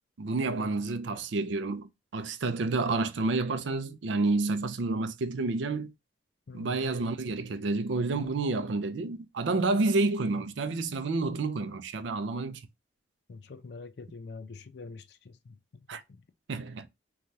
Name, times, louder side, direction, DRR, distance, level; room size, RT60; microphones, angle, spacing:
voice 1, 0.2-5.9 6.5-12.6 15.9-16.0 16.5-16.9, right 3 dB, 75° right, 0.5 m, -29 dB
voice 2, 6.5-6.8 13.3-16.2, left 4 dB, 60° left, 0.4 m, -46 dB
3.2 x 2.3 x 2.6 m
head